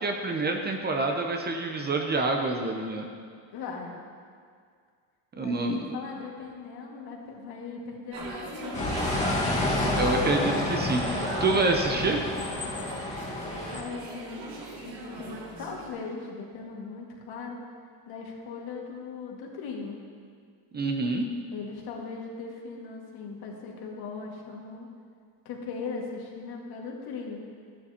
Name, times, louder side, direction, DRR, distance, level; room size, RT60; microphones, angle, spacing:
voice 1, 0.0-3.1 5.3-6.0 9.9-12.2 20.7-21.3, right 3 dB, 25° right, 3 dB, 0.7 m, -27 dB
voice 2, 3.5-4.0 5.4-9.1 13.7-17.6 18.1-20.0 21.5-24.9 25.5-27.5, left 4 dB, 60° left, -1 dB, 2.0 m, -39 dB
sound 1, 8.1-15.9, right 3 dB, 60° right, 2.4 m, -38 dB
sound 2, 8.7-13.8, left 2 dB, 15° left, 1.6 m, -29 dB
13.5 x 11.0 x 2.9 m, 2.1 s
cardioid pair, 140°, 43 cm